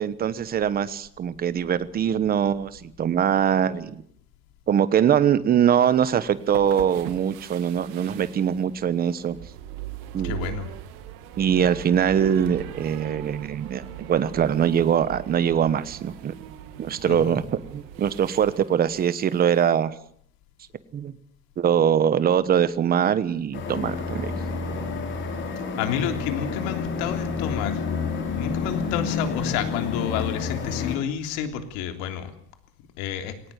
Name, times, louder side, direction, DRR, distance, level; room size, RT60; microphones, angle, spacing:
voice 1, 0.0-4.0 4.7-9.4 10.1-10.5 11.4-13.8 14.1-16.3 16.8-17.4 17.7-19.9 20.9-21.1 21.6-24.3, right 8 dB, 25° right, 15 dB, 1.1 m, -22 dB
sound 1, 5.8-19.7, right 12 dB, 85° right, 2.7 m, -40 dB
voice 2, 10.2-10.7 17.0-17.5 25.3-27.9 28.3-32.3 33.0-33.4, left 9 dB, 80° left, 7 dB, 3.3 m, -30 dB
sound 2, 23.5-31.0, left 5 dB, 35° left, 4.2 m, -29 dB
20.0 x 18.5 x 8.3 m, 0.63 s
cardioid pair, 165°, 34 cm